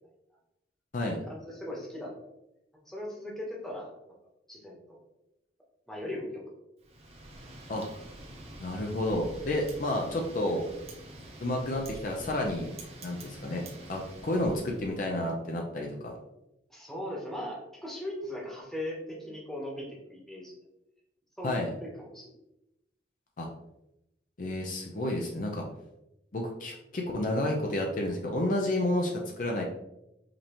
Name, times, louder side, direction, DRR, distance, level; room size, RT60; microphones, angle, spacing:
voice 1, 1.3-2.1 2.8-3.9 4.5-5.0 5.9-6.5 16.7-20.5 21.4-22.3, left 1 dB, ahead, -4 dB, 1.0 m, -39 dB
Wind, 6.8-15.0, right 1 dB, 35° right, 0.8 m, -47 dB
voice 2, 8.6-10.6 11.4-12.7 13.0-16.1 21.4-21.7 23.4-23.5 24.4-25.6 26.3-29.6, left 1 dB, 45° left, 0 dB, 0.5 m, -30 dB
5.2 x 2.8 x 2.9 m, 0.88 s
head